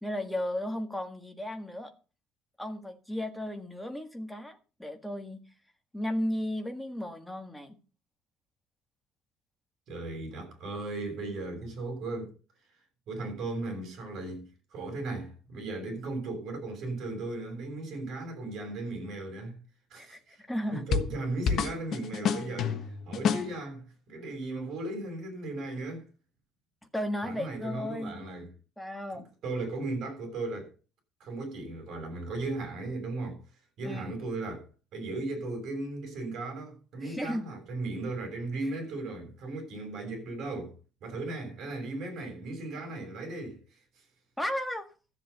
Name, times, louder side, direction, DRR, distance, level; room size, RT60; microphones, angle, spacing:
voice 1, 0.0-1.9 2.6-5.4 5.9-7.8 19.9-20.8 26.9-28.3 28.8-29.3 33.8-34.1 37.0-37.4 44.4-44.9, left 1 dB, 5° left, 1.6 m, -34 dB
voice 2, 9.9-12.3 13.1-19.6 19.9-20.4 20.7-26.0 27.2-28.5 29.4-30.7 31.2-33.4 33.8-34.7 34.9-40.8 41.0-43.8, right 2 dB, 50° right, 6.7 m, -36 dB
sound 1, 20.9-21.2 21.5-23.6, left 6 dB, 45° left, 1.2 m, -29 dB
14.0 x 7.6 x 6.8 m
cardioid pair, 160°, 0 cm